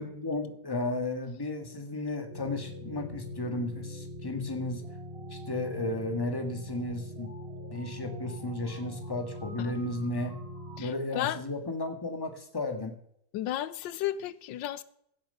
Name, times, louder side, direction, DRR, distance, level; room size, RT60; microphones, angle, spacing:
voice 1, 0.0-4.8 5.3-7.3 7.7-10.3 10.8-13.0, left 2 dB, 15° left, 1.6 m, -34 dB
sound 1, 2.3-10.8, left 1 dB, 30° right, 2.5 m, -42 dB
voice 2, 10.8-11.4 13.3-14.8, left 12 dB, 85° left, 1.4 m, -33 dB
16.0 x 7.5 x 5.6 m
omnidirectional pair, 2.0 m